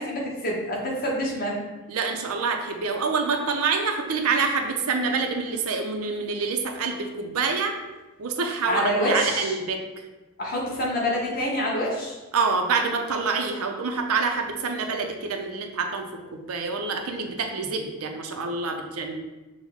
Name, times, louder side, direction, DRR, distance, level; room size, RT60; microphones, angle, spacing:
voice 1, 0.0-1.6 8.6-9.5 10.4-12.2, equal, 40° left, -3 dB, 1.0 m, -26 dB
voice 2, 1.9-7.7 8.2-9.8 12.3-19.2, right 4 dB, 80° right, 4 dB, 0.5 m, -26 dB
6.2 x 2.1 x 3.5 m, 1.1 s
head